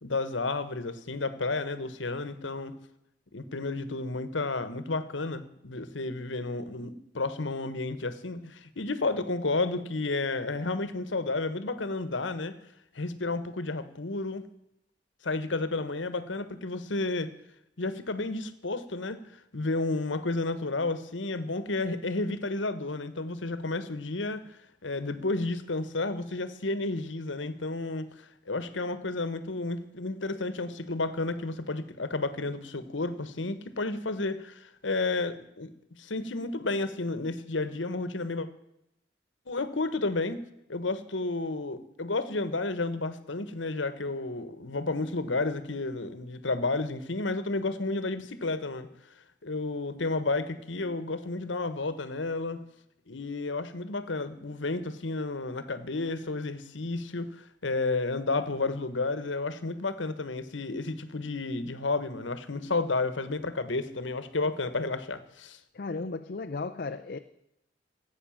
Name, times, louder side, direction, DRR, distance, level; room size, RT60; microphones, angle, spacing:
voice 1, 0.0-2.7 3.3-12.5 12.9-14.4 15.2-17.3 17.8-19.2 19.5-28.1 28.5-35.7 36.0-38.5 39.5-40.4 40.7-48.9 49.4-52.6 53.1-65.6, left 3 dB, 90° left, 13 dB, 1.2 m, -31 dB
voice 2, 65.7-67.2, left 3 dB, 55° left, 6 dB, 0.6 m, -35 dB
16.5 x 8.4 x 7.2 m, 0.82 s
head